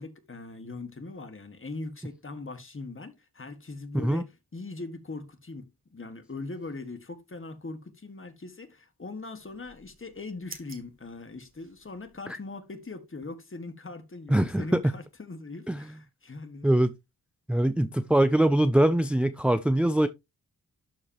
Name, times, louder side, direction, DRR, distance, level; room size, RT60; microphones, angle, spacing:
voice 1, 0.0-16.7, left 3 dB, 35° left, 1.7 m, -41 dB
sound 1, 9.4-12.2, right 3 dB, 35° right, 1.6 m, -51 dB
voice 2, 14.3-14.9 15.7-15.9 16.6-16.9 17.5-20.1, right 1 dB, 5° right, 0.4 m, -23 dB
12.0 x 4.9 x 2.9 m
wide cardioid pair, 90°, 38 cm